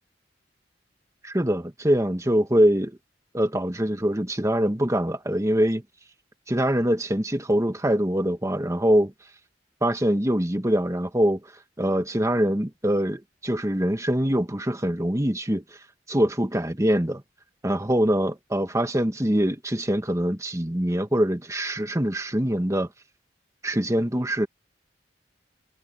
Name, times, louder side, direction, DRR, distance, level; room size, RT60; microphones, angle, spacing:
voice 1, 1.2-3.0 3.3-5.8 6.5-9.1 9.8-11.4 11.8-15.8 16.1-17.2 17.6-22.9 23.6-24.5, equal, 15° right, 1.5 m, -24 dB
head